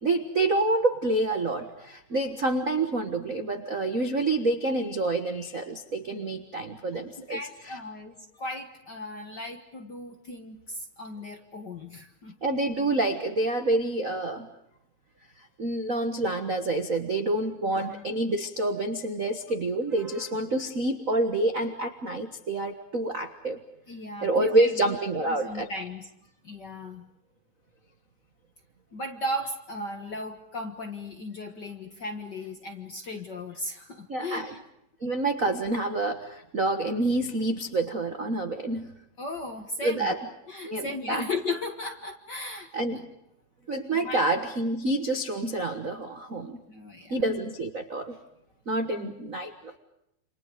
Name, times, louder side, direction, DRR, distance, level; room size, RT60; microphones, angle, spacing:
voice 1, 0.0-7.4 7.6-7.8 12.4-14.5 15.6-23.6 24.2-25.7 34.1-34.5 35.0-38.9 39.8-40.3 40.6-41.3 42.7-43.1 43.7-46.6 47.1-48.1 48.7-49.7, right 2 dB, 70° right, 6 dB, 0.7 m, -27 dB
voice 2, 6.9-12.4 17.6-18.1 23.9-26.1 26.4-27.1 28.9-34.6 39.2-40.1 40.5-42.7 44.0-44.2 46.7-47.2 48.8-49.2, left 1 dB, 45° left, 5 dB, 1.4 m, -36 dB
29.0 x 27.5 x 5.1 m, 0.80 s
omnidirectional pair, 4.1 m